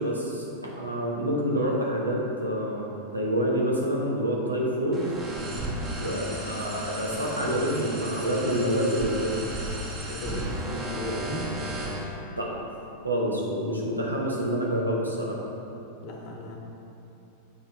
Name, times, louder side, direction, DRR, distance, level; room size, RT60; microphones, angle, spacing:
voice 1, 0.0-5.0 6.0-9.4 12.4-12.5 13.0-15.4, equal, 85° right, -3 dB, 1.2 m, -27 dB
sound 1, 4.9-12.0, right 1 dB, 20° right, 1.7 m, -34 dB
voice 2, 5.5-5.9 7.4-7.9 10.1-11.5 16.0-16.6, left 1 dB, 45° left, 1 dB, 1.1 m, -35 dB
7.9 x 5.8 x 4.0 m, 2.8 s
figure-of-eight pair, 90°, 0 cm